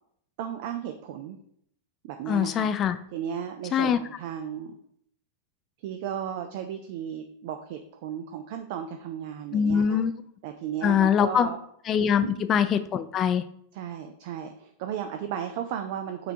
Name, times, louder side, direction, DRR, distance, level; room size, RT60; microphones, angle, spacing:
voice 1, 0.4-1.4 2.0-2.7 3.1-4.7 5.8-10.0 10.4-11.6 12.2-12.3 13.7-16.3, right 9 dB, 50° right, 6 dB, 0.4 m, -35 dB
voice 2, 2.3-3.0 3.7-4.0 9.5-10.1 10.8-11.5 11.9-13.4, left 8 dB, 30° left, 11 dB, 0.3 m, -23 dB
5.8 x 3.3 x 2.7 m, 0.69 s
figure-of-eight pair, 90°, 0 cm